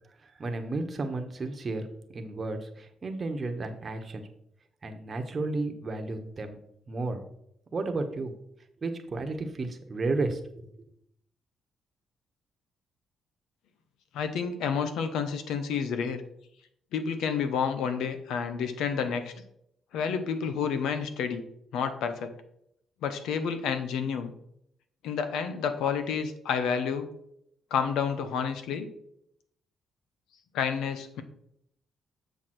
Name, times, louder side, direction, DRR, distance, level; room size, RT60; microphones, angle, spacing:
voice 1, 0.2-1.9 2.1-4.2 4.8-6.6 6.9-7.2 7.7-8.3 8.8-10.7, right 3 dB, 35° right, 5 dB, 1.1 m, -33 dB
voice 2, 14.1-16.2 16.9-19.3 19.9-21.4 21.7-22.3 23.0-24.3 25.0-27.1 27.7-28.9 30.5-31.2, left 6 dB, 90° left, 9 dB, 0.9 m, -29 dB
7.1 x 6.2 x 4.4 m, 0.75 s
cardioid pair, 110°, 0 cm